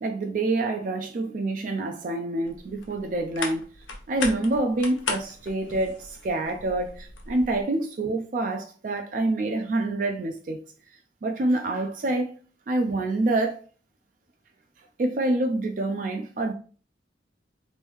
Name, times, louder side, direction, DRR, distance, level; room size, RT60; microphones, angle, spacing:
voice 1, 0.0-3.6 4.1-10.6 11.2-12.4 12.7-13.6 15.0-16.5, right 2 dB, 45° right, 0.3 m, -27 dB
sound 1, 2.5-7.6, left 4 dB, 90° left, 0.7 m, -37 dB
3.0 x 2.6 x 3.4 m
head